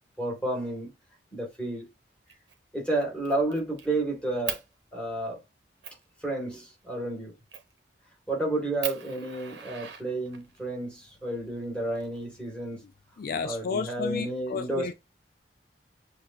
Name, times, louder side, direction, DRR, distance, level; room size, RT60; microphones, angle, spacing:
voice 1, 0.2-0.9 1.3-1.9 2.7-4.6 4.9-5.4 6.2-7.3 8.3-12.8 13.4-14.9, right 2 dB, 5° left, 1.9 m, -31 dB
Fire, 2.3-2.6 3.0-3.9 4.5-4.7 5.3-5.4 5.8-6.0 7.5-7.8 8.3-8.4 8.8-10.6 11.6-12.6, right 9 dB, 80° right, 0.9 m, -39 dB
voice 2, 13.2-14.9, left 5 dB, 55° left, 0.3 m, -32 dB
6.7 x 2.6 x 2.5 m
head